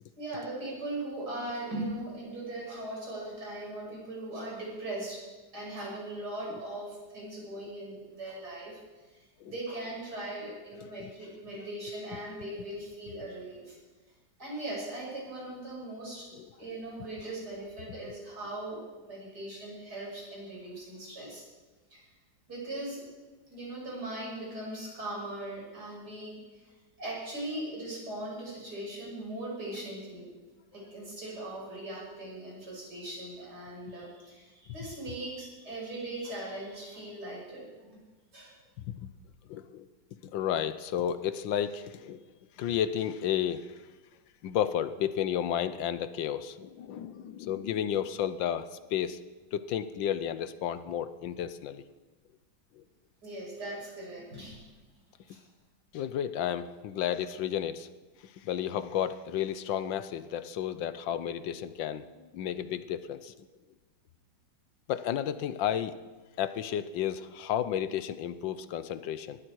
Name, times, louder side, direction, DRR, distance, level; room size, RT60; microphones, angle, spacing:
voice 1, 0.2-5.2 5.5-13.8 14.4-16.3 16.6-21.4 21.9-22.1 22.5-23.0 23.5-26.7 27.0-30.3 30.7-38.0 38.3-38.6 53.2-54.7 55.3-55.4, right 1 dB, 55° right, -4 dB, 6.6 m, -39 dB
voice 2, 39.5-39.9 40.3-42.2 42.6-43.6 44.4-48.6 48.9-49.2 49.5-51.8 52.8-52.9 55.9-57.9 58.4-62.1 62.3-63.3 64.9-65.9 66.4-69.4, left 10 dB, 75° left, 13 dB, 1.5 m, -32 dB
20.0 x 14.0 x 4.7 m, 1.3 s
omnidirectional pair, 2.1 m